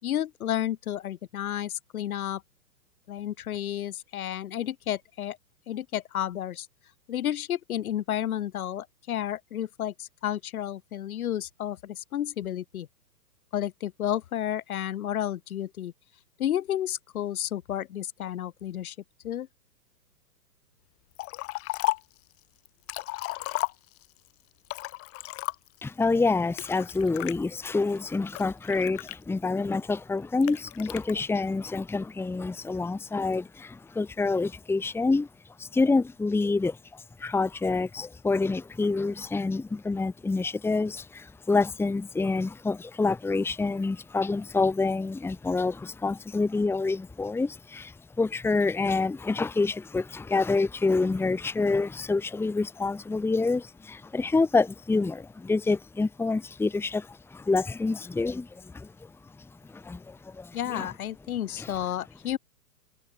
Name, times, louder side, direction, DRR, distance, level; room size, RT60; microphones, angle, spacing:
voice 1, 0.0-2.4 3.1-5.4 5.7-6.7 7.1-12.9 13.5-15.9 16.4-18.9 19.2-19.5 60.5-62.4, left 11 dB, 60° left, 6.6 m, -31 dB
Liquid, 21.2-22.2 22.7-24.2 24.6-25.9 26.6-27.4 28.0-29.6 30.4-31.1, left 20 dB, 25° left, 3.9 m, -33 dB
voice 2, 25.8-35.3 35.6-59.1 59.4-60.9 61.6-61.7, left 3 dB, 5° left, 1.9 m, -27 dB
hypercardioid pair, 135°, 49 cm